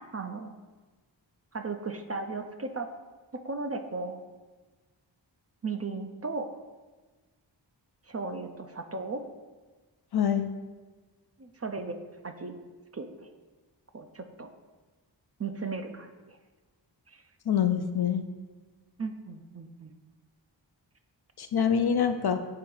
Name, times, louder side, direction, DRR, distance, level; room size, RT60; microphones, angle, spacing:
voice 1, 0.1-0.5 1.5-2.9 3.4-4.2 5.6-6.5 8.1-9.2 11.4-12.6 12.9-13.3 13.9-14.5 15.4-16.4 17.1-17.2 19.0-19.9, right 3 dB, 35° right, 6 dB, 0.5 m, -36 dB
voice 2, 10.1-10.5 17.5-18.3 21.4-22.4, left 8 dB, 55° left, 8 dB, 0.5 m, -25 dB
8.6 x 3.4 x 3.2 m, 1.3 s
wide cardioid pair, 50°, 45 cm